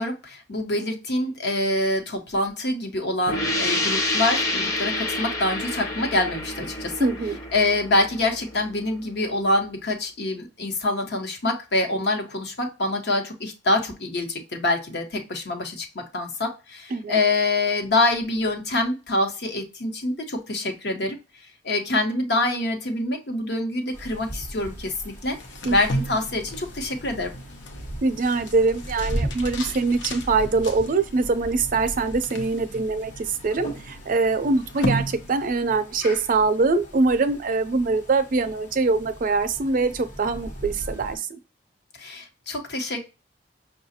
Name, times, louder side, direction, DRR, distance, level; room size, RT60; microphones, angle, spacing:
voice 1, 0.0-7.1 7.5-21.2 21.6-25.4 25.7-27.3 42.0-43.0, left 2 dB, 65° left, 1.0 m, -25 dB
sound 1, 3.3-8.7, left 1 dB, 20° left, 0.7 m, -28 dB
voice 2, 7.0-7.4 16.9-17.2 25.6-25.7 28.0-41.3, right 3 dB, 50° right, 0.5 m, -23 dB
sound 2, 23.9-41.2, right 1 dB, 45° left, 1.2 m, -38 dB
sound 3, 25.3-35.8, equal, 85° left, 0.7 m, -35 dB
5.7 x 2.4 x 2.6 m
head